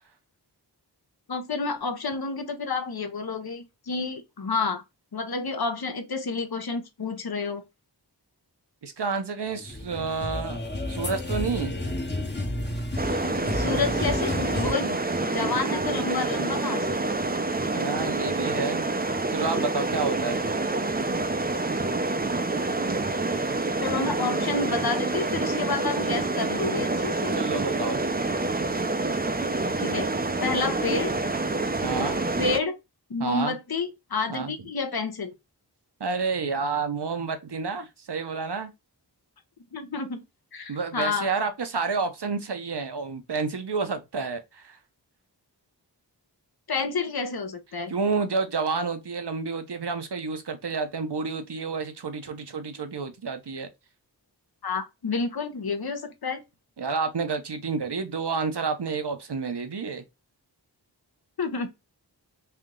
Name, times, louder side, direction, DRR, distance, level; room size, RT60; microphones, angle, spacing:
voice 1, 1.3-4.8 5.1-7.6 13.5-15.0 15.3-17.0 23.8-27.4 29.8-30.1 30.4-31.1 32.0-32.1 32.4-32.8 33.1-35.3 39.7-40.2 40.5-41.3 46.7-47.9 54.6-56.4 61.4-61.7, left 4 dB, 60° left, 0.8 m, -29 dB
voice 2, 8.8-10.6 10.9-11.7 17.7-18.8 19.3-20.4 27.3-28.1 31.8-32.2 33.2-33.5 34.3-34.5 36.0-38.7 40.7-44.8 47.9-53.7 56.8-60.0, right 4 dB, 70° right, 0.8 m, -29 dB
sound 1, 9.6-14.7, left 1 dB, 25° left, 0.9 m, -31 dB
sound 2, 13.0-32.6, right 2 dB, 20° right, 0.5 m, -27 dB
3.4 x 2.8 x 3.7 m
wide cardioid pair, 50°, 42 cm